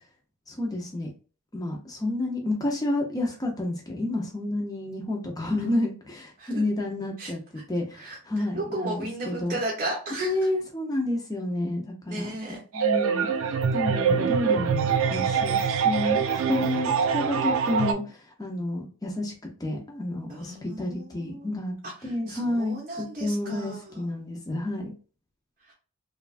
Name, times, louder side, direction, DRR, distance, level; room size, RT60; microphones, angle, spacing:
voice 1, 0.5-1.1 1.5-7.4 7.7-9.6 10.2-12.3 12.7-13.3 13.7-19.3 19.6-21.7 22.0-24.9, left 1 dB, 15° left, 1 dB, 0.6 m, -30 dB
voice 2, 7.9-10.4 12.1-12.6 16.3-16.8 20.3-21.5 21.8-24.0 25.6-25.7, right 1 dB, 35° right, -4 dB, 0.7 m, -35 dB
sound 1, 12.7-17.9, right 6 dB, 65° right, 0.4 m, -24 dB
3.0 x 2.3 x 2.4 m, 0.36 s
head